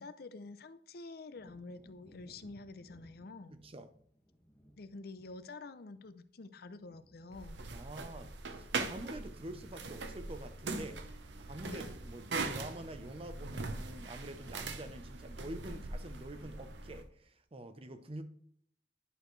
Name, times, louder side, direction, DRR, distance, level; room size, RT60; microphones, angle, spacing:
voice 1, 0.0-3.5 4.8-7.6 11.7-11.9, left 3 dB, 60° left, 0.5 m, -48 dB
Wind / Thunder, 1.3-8.9 9.2-16.4 16.8-17.0, equal, 10° left, 1.7 m, -65 dB
voice 2, 3.5-3.9 7.7-18.2, right 1 dB, 35° right, 0.7 m, -46 dB
sound 1, 7.3-17.0, right 3 dB, 80° right, 0.8 m, -41 dB
11.0 x 6.4 x 3.2 m
head